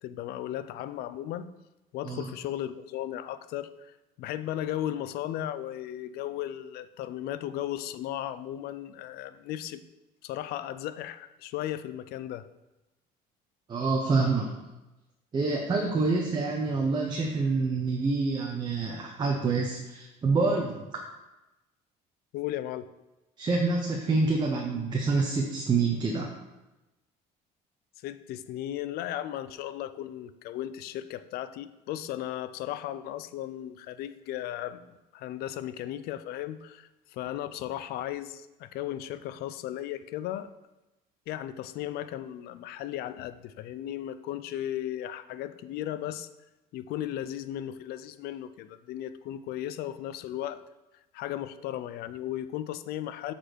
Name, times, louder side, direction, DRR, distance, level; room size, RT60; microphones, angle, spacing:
voice 1, 0.0-1.5 1.9-9.8 10.2-12.4 22.3-22.9 28.0-40.5 41.3-46.3 46.7-50.6 51.1-53.3, left 12 dB, 70° left, 13 dB, 0.5 m, -36 dB
voice 2, 13.7-14.5 15.3-20.8 23.4-26.3, right 3 dB, 25° right, 0 dB, 0.9 m, -27 dB
7.7 x 4.3 x 6.3 m, 1.0 s
cardioid pair, 140°, 17 cm